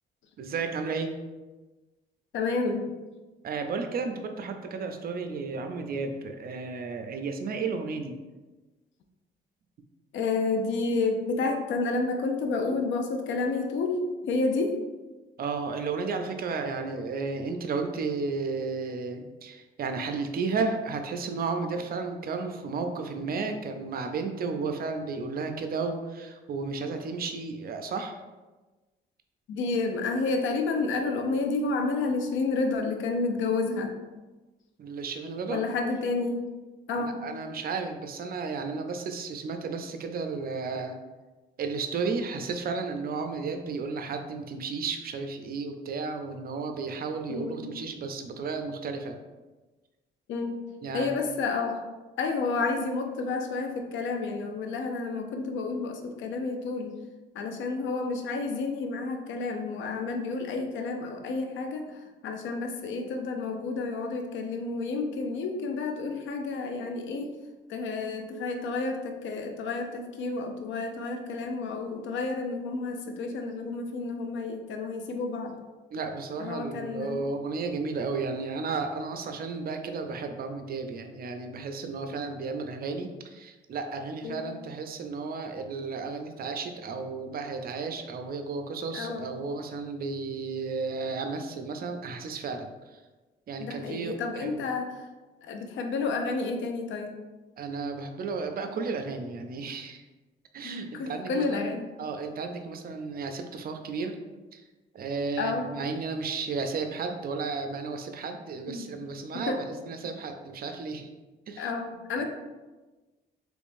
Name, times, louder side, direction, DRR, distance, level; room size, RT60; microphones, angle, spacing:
voice 1, 0.4-1.1 3.4-8.2 15.4-28.2 34.8-35.6 37.0-41.0 41.6-49.2 50.8-51.1 75.9-93.0 93.5-94.6 97.6-100.0 100.5-101.6 102.0-104.2 104.5-104.6 104.9-111.1 111.5-111.7 112.2-112.3, right 4 dB, 50° right, 6 dB, 0.5 m, -33 dB
voice 2, 2.3-2.9 10.1-14.8 29.5-33.9 35.5-36.5 36.9-37.2 47.3-47.6 50.3-50.6 50.9-51.8 52.2-57.0 57.3-67.3 67.7-75.6 76.4-77.3 84.2-84.4 88.9-89.3 93.6-95.0 95.4-97.1 100.6-101.9 105.4-105.7 108.7-108.9 109.3-109.6 111.6-112.2, left 3 dB, 75° left, 5 dB, 0.5 m, -30 dB
3.5 x 3.1 x 2.6 m, 1.2 s
cardioid pair, 90°, 20 cm